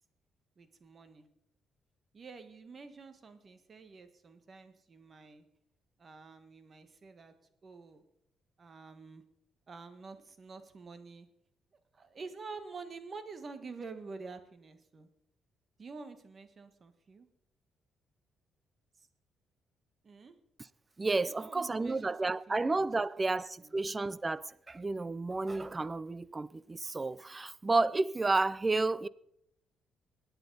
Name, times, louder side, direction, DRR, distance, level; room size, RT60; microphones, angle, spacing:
voice 1, 0.6-1.3 2.1-5.4 6.0-7.3 7.6-8.0 8.6-9.2 9.7-11.3 11.9-15.1 15.8-17.3 19.0-19.1 20.0-20.3 21.2-22.7 23.0-23.7, right 4 dB, 40° right, 1.5 m, -48 dB
voice 2, 21.0-29.1, right 3 dB, 25° right, 0.5 m, -31 dB
22.0 x 9.0 x 4.1 m
cardioid pair, 90°, 0 cm